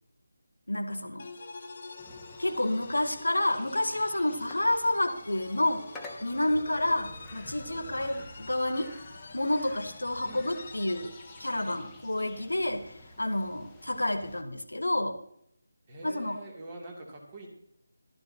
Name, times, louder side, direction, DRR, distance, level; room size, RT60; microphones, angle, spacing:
voice 1, 0.7-1.3 2.4-5.8 6.2-8.9 9.3-11.1 11.4-15.2 16.0-16.4, left 1 dB, 80° left, 8 dB, 1.4 m, -29 dB
sound 1, 1.2-11.9, left 3 dB, 40° left, 1.3 m, -47 dB
sound 2, 2.0-14.4, left 1 dB, 5° left, 1.3 m, -50 dB
voice 2, 15.9-17.5, right 2 dB, 25° right, -1 dB, 2.7 m, -44 dB
15.0 x 12.5 x 2.8 m, 0.74 s
figure-of-eight pair, 160°, 0 cm